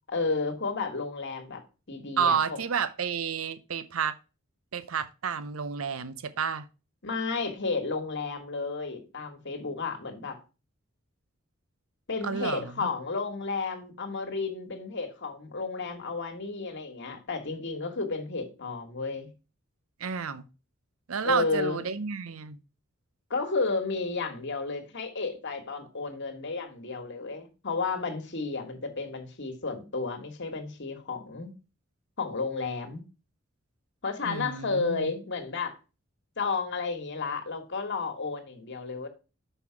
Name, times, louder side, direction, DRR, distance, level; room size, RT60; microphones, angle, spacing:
voice 1, 0.1-1.6 1.9-2.6 7.0-10.4 12.1-19.3 21.2-21.8 23.3-31.5 32.2-33.0 34.0-35.7 36.4-39.1, left 4 dB, 60° left, 1.6 m, -32 dB
voice 2, 2.2-4.2 4.7-6.7 12.2-12.9 20.0-20.5 21.1-22.6 34.3-35.1, right 6 dB, 80° right, 0.6 m, -30 dB
6.3 x 5.5 x 5.8 m
head